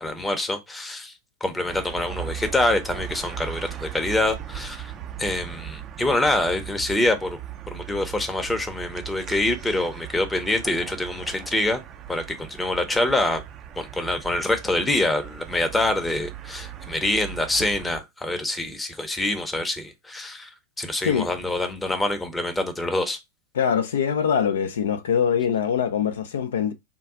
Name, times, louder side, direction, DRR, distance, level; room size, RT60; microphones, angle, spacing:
voice 1, 0.0-1.1 1.4-4.9 5.2-7.4 7.7-11.8 12.1-13.4 13.8-20.5 20.8-23.2, left 1 dB, 10° left, 0.7 m, -25 dB
sound 1, 1.7-17.9, right 10 dB, 30° right, 0.4 m, -38 dB
voice 2, 23.5-26.7, left 7 dB, 60° left, 0.4 m, -23 dB
3.7 x 2.3 x 3.5 m
figure-of-eight pair, 90°, 0 cm